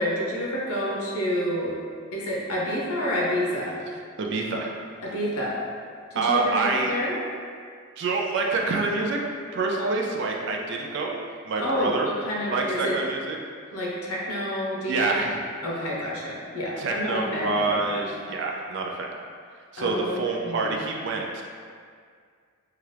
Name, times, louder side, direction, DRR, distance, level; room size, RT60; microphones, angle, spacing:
voice 1, 0.0-1.8 2.1-3.8 5.0-5.6 6.1-7.2 9.8-10.0 11.6-13.0 13.7-15.2 15.6-18.0 19.8-20.7, equal, 90° left, -4 dB, 0.7 m, -29 dB
voice 2, 4.2-4.7 6.1-7.0 8.0-9.2 9.5-12.1 12.5-13.4 14.9-15.5 16.8-19.1 19.7-21.4, right 3 dB, 55° right, 0 dB, 0.3 m, -27 dB
2.8 x 2.3 x 3.3 m, 2.1 s
head